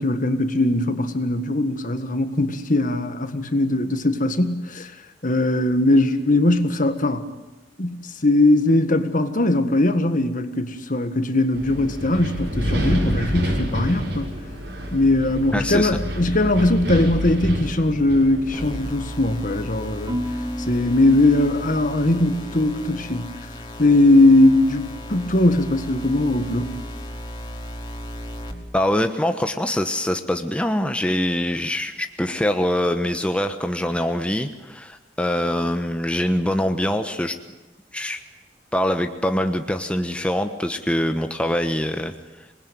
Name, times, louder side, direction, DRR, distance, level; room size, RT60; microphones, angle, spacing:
voice 1, 0.0-4.9 5.2-7.2 7.8-14.3 14.9-20.2 20.7-23.3 23.8-26.8, left 2 dB, 50° left, 9 dB, 1.8 m, -20 dB
Wind, 11.5-18.9, equal, 80° right, 6.7 m, -27 dB
voice 2, 15.5-15.9 28.7-37.4 37.9-38.2 38.7-42.1, left 1 dB, 5° left, 6 dB, 1.1 m, -24 dB
sound 1, 18.5-28.5, equal, 25° left, 3.3 m, -35 dB
Marimba xylophone / Wood, 20.1-22.3, equal, 25° right, 2.3 m, -32 dB
26.5 x 20.5 x 9.4 m, 1.1 s
head